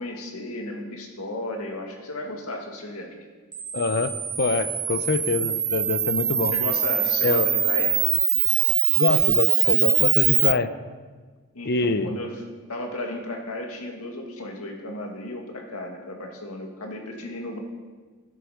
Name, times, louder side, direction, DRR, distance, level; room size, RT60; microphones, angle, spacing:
voice 1, 0.0-3.1 6.5-8.0 11.5-12.4 12.7-17.6, left 1 dB, 90° left, 2 dB, 2.2 m, -34 dB
Camera, 3.5-10.5, right 9 dB, 20° right, 0.6 m, -23 dB
voice 2, 3.7-6.5 7.2-7.5 9.0-10.7 11.6-12.1, left 3 dB, 50° left, 11 dB, 0.7 m, -25 dB
13.0 x 12.0 x 5.1 m, 1.4 s
head